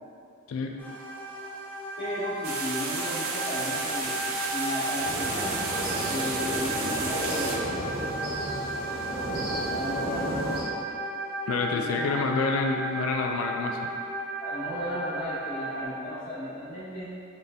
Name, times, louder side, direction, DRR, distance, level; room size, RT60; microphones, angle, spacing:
sound 1, 0.8-15.8, right 1 dB, 10° left, 0.5 m, -34 dB
voice 1, 2.0-4.1 4.5-5.5 6.0-8.2 9.6-10.3 11.7-12.1 14.4-17.1, left 1 dB, 25° left, -12 dB, 1.3 m, -35 dB
sound 2, 2.4-7.6, right 3 dB, 80° right, 0.5 m, -32 dB
sound 3, 5.0-10.6, right 1 dB, 50° right, 0.8 m, -33 dB
voice 2, 11.5-13.8, left 4 dB, 75° left, 2 dB, 0.3 m, -28 dB
5.0 x 2.5 x 2.6 m, 2.5 s
head